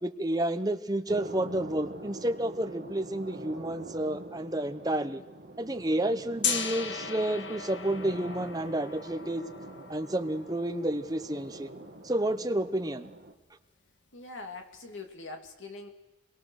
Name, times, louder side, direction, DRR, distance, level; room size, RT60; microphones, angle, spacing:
voice 1, 0.0-5.2 5.6-9.4 9.9-11.7 12.0-13.1, right 1 dB, 20° right, 8 dB, 1.0 m, -30 dB
sound 1, 1.1-13.3, right 1 dB, 50° right, 2.3 m, -45 dB
Gong, 6.4-12.3, left 6 dB, 70° left, 1.9 m, -37 dB
voice 2, 14.1-15.9, left 3 dB, 85° left, 4 dB, 2.8 m, -43 dB
27.5 x 23.0 x 6.5 m, 1.0 s
head